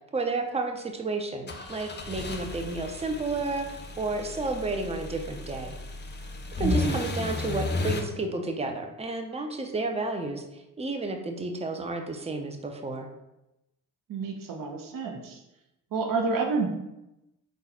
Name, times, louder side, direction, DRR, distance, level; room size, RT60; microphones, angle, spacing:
voice 1, 0.1-5.8 6.6-13.1, right 3 dB, 15° right, 4 dB, 0.6 m, -31 dB
sound 1, 1.5-8.0, left 3 dB, 30° left, 0.7 m, -34 dB
voice 2, 6.6-7.0 14.1-15.4 15.9-16.7, right 4 dB, 60° right, 2 dB, 0.9 m, -29 dB
3.9 x 2.5 x 4.2 m, 0.93 s
supercardioid pair, 55°, 38 cm